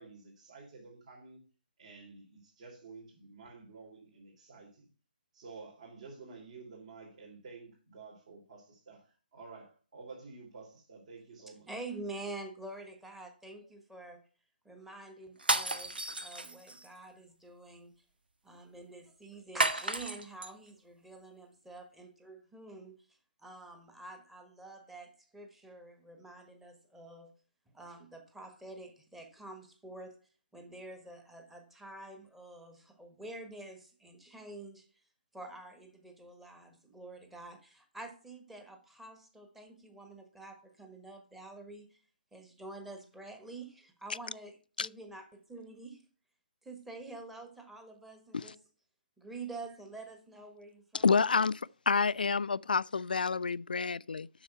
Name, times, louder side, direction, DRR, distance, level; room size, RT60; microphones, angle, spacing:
voice 1, 0.0-1.4 1.8-4.9 5.3-11.7, right 4 dB, 50° right, 3.6 m, -51 dB
voice 2, 11.7-14.2 14.6-17.9 18.4-23.0 23.4-27.3 27.7-30.1 30.5-34.8 35.3-42.0 42.3-46.0 46.6-48.6 49.2-51.2, right 2 dB, 5° right, 1.3 m, -47 dB
sound 1, 15.4-16.9 19.6-20.5, right 2 dB, 80° right, 1.0 m, -32 dB
voice 3, 50.9-51.6 51.9-54.3, left 5 dB, 70° left, 0.3 m, -28 dB
7.7 x 6.4 x 5.5 m
figure-of-eight pair, 140°, 5 cm